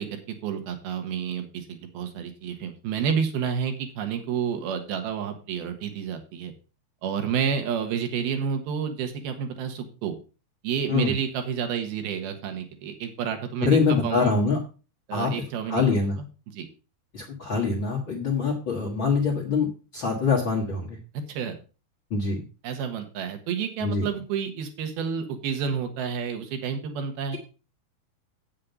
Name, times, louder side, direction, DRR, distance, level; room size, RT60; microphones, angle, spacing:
voice 1, 0.0-6.5 7.0-10.1 10.6-14.3 15.1-15.8 16.5-16.7 21.1-21.5 22.6-27.4, right 7 dB, 80° right, 6 dB, 3.3 m, -30 dB
voice 2, 13.6-14.6 15.1-15.3 15.6-16.2 17.1-21.0 22.1-22.4 23.8-24.0, left 4 dB, 50° left, -3 dB, 1.5 m, -24 dB
8.6 x 7.5 x 5.3 m, 0.33 s
omnidirectional pair, 4.5 m